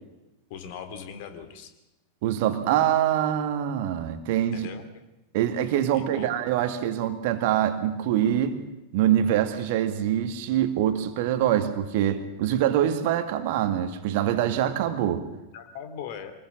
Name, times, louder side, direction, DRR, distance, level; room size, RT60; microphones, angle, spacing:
voice 1, 0.5-1.7 4.5-4.9 5.9-6.3 15.5-16.3, left 8 dB, 50° left, 8 dB, 2.8 m, -39 dB
voice 2, 2.2-4.7 5.3-8.6 8.9-15.3, right 11 dB, 50° right, 9 dB, 2.0 m, -24 dB
24.5 x 21.0 x 6.2 m, 0.96 s
figure-of-eight pair, 90°, 0 cm